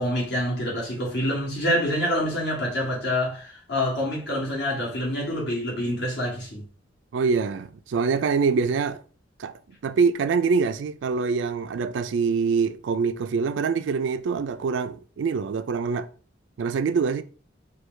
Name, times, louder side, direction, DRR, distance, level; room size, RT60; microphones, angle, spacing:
voice 1, 0.0-6.6, equal, 60° left, 2.0 m, -26 dB
voice 2, 7.1-9.0 9.4-16.1 16.6-17.2, right 5 dB, 75° right, 0.3 m, -25 dB
4.6 x 2.3 x 3.2 m
head